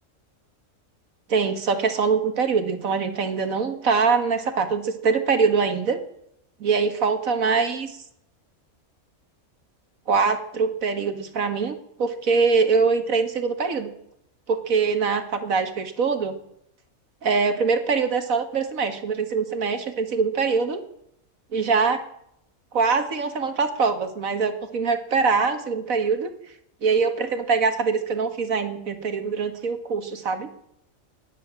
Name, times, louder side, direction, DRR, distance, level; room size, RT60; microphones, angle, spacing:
voice 1, 1.3-6.0 6.6-8.0 10.1-13.9 14.5-16.4 17.2-20.8 21.5-22.0 22.7-26.3 26.8-30.5, right 5 dB, 75° right, 8 dB, 2.1 m, -23 dB
17.0 x 11.0 x 7.5 m, 0.75 s
omnidirectional pair, 1.4 m